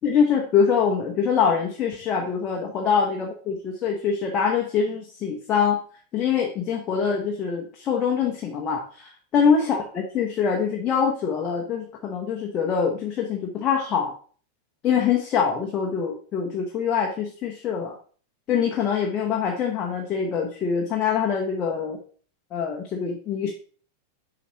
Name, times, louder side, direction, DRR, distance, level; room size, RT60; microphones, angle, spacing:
voice 1, 0.0-5.8 6.1-14.1 14.8-17.9 18.5-22.0 22.5-23.5, left 6 dB, 30° left, 0 dB, 0.9 m, -24 dB
7.0 x 4.8 x 3.0 m, 0.43 s
figure-of-eight pair, 90°, 0 cm